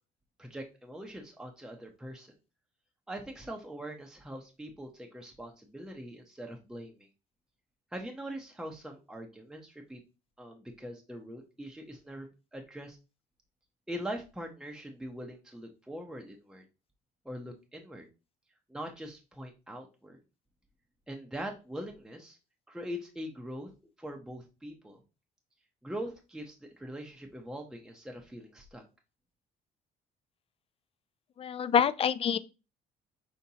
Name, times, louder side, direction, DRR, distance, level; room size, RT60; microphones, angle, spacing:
voice 1, 0.4-2.3 3.1-7.1 7.9-10.0 10.4-13.0 13.9-16.6 17.2-18.1 18.7-20.2 21.1-22.4 22.7-23.7 24.0-25.0 25.8-28.8, equal, 5° right, 0.7 m, -42 dB
voice 2, 31.4-32.4, left 8 dB, 35° left, 0.4 m, -26 dB
5.5 x 3.5 x 2.8 m
cardioid pair, 110°, 17 cm